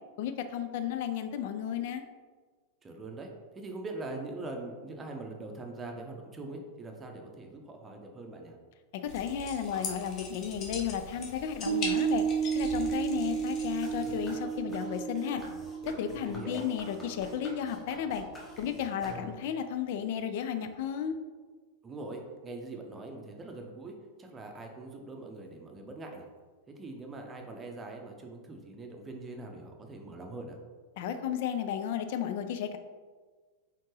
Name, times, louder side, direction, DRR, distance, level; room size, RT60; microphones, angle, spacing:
voice 1, 0.2-2.0 8.9-12.2 12.5-15.4 16.0-18.2 18.6-21.2 31.0-32.8, left 8 dB, 50° left, 9 dB, 0.4 m, -33 dB
voice 2, 2.8-8.6 9.7-9.9 16.2-16.6 21.8-26.3 26.7-30.6, right 2 dB, 20° right, 2 dB, 0.7 m, -42 dB
sound 1, 9.1-14.4, left 3 dB, 35° left, 0.8 m, -41 dB
Piano, 11.7-18.4, right 7 dB, 75° right, 0.4 m, -33 dB
sound 2, 13.8-19.6, left 1 dB, 15° left, 1.2 m, -48 dB
4.3 x 3.7 x 3.2 m, 1.4 s
figure-of-eight pair, 90°, 0 cm